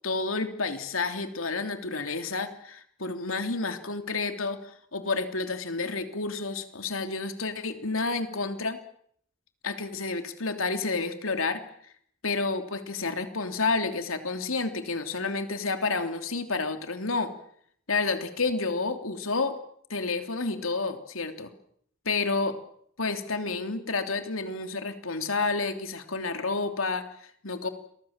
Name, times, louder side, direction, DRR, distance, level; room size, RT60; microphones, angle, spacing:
voice 1, 0.0-8.8 9.6-11.6 12.2-17.3 17.9-19.5 19.9-21.5 22.0-22.6 23.0-27.7, left 3 dB, 75° left, 7 dB, 3.2 m, -30 dB
29.0 x 23.5 x 7.5 m, 0.67 s
head